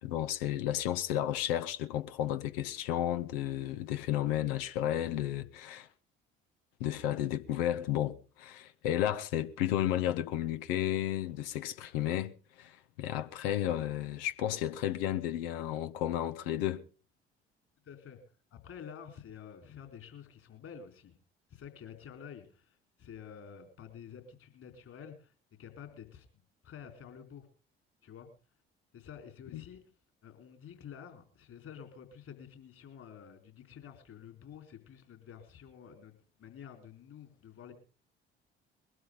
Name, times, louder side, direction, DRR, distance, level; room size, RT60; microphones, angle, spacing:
voice 1, 0.0-5.9 6.8-16.8 29.5-29.6, left 12 dB, 65° left, 0.9 m, -33 dB
voice 2, 17.8-18.2 18.5-21.2 21.5-25.3 25.6-27.5 28.0-28.3 28.9-29.8 30.2-37.7, left 8 dB, 50° left, 4.0 m, -50 dB
21.5 x 12.5 x 3.8 m
figure-of-eight pair, 50°, 30 cm